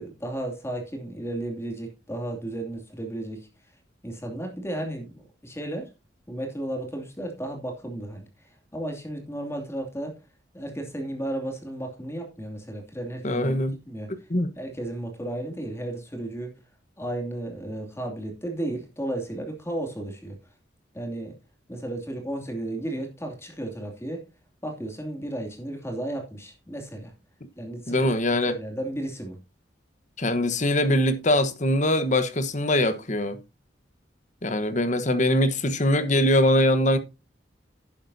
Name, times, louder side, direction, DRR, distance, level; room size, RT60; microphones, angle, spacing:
voice 1, 0.0-3.5 4.0-5.9 6.3-10.2 10.5-14.1 14.6-16.5 17.0-20.4 20.9-21.4 21.7-24.2 24.6-27.1 27.6-28.1 28.5-29.4, right 1 dB, 15° left, 2.6 m, -34 dB
voice 2, 13.2-13.8 14.3-14.5 27.9-28.5 30.2-33.4 34.4-37.0, left 1 dB, 40° left, 1.2 m, -22 dB
11.0 x 10.5 x 2.7 m
head